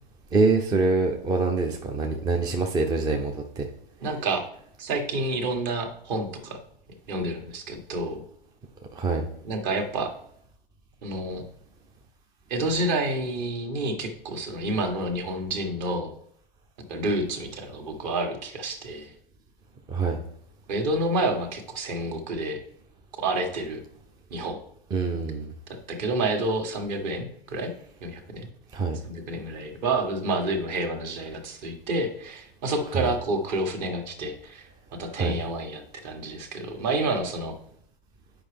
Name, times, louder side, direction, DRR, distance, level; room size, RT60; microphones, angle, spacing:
voice 1, 0.3-3.7 9.0-9.2 19.9-20.2 24.9-25.5 28.7-29.0 32.9-33.1 35.2-35.4, right 3 dB, 15° right, 3 dB, 0.5 m, -25 dB
voice 2, 4.0-4.4 4.8-6.6 7.1-8.2 9.4-10.1 11.0-11.4 12.5-16.1 16.9-19.1 20.7-22.6 23.2-23.8 24.3-24.6 25.9-27.7 28.0-28.5 29.0-34.6 34.9-37.5, right 2 dB, 45° right, 4 dB, 1.6 m, -29 dB
8.6 x 5.1 x 3.4 m, 0.68 s
hypercardioid pair, 110°, 29 cm